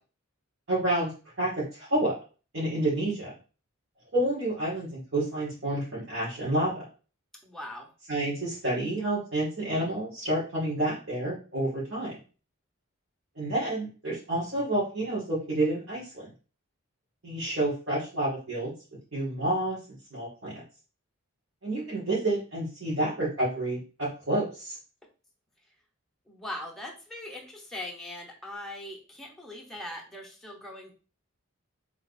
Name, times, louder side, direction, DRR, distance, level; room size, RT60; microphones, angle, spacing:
voice 1, 0.7-1.1 1.4-2.2 2.5-3.3 4.1-6.8 8.1-12.2 13.4-16.3 17.2-18.7 19.1-19.8 20.1-20.6 21.6-24.8, right 1 dB, 60° right, -8 dB, 1.9 m, -29 dB
voice 2, 7.4-7.9 26.3-30.9, left 1 dB, ahead, -1 dB, 0.8 m, -40 dB
3.5 x 3.0 x 4.0 m, 0.36 s
head